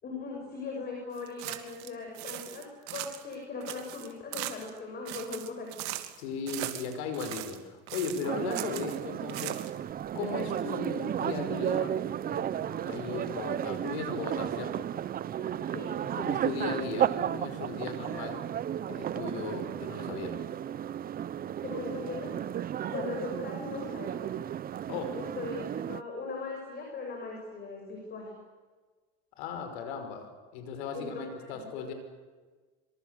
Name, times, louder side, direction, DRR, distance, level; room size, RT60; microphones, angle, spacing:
voice 1, 0.0-6.0 15.4-16.0 21.6-24.3 25.2-28.3 30.9-31.2 31.5-31.9, left 4 dB, 30° left, 1 dB, 6.9 m, -39 dB
sound 1, 1.2-1.9 2.1-3.3 3.6-4.8 5.0-6.2 6.5-7.6 7.9-9.0 9.3-9.9, right 16 dB, 65° right, 2.8 m, -39 dB
voice 2, 6.2-9.8 10.1-12.0 12.2-14.9 16.1-18.4 18.9-20.5 24.9-25.2 29.4-31.9, left 5 dB, 85° left, 7 dB, 5.7 m, -37 dB
sound 2, 8.2-26.0, right 10 dB, 30° right, 0.8 m, -33 dB
25.5 x 25.0 x 8.2 m, 1.4 s
supercardioid pair, 130°, 31 cm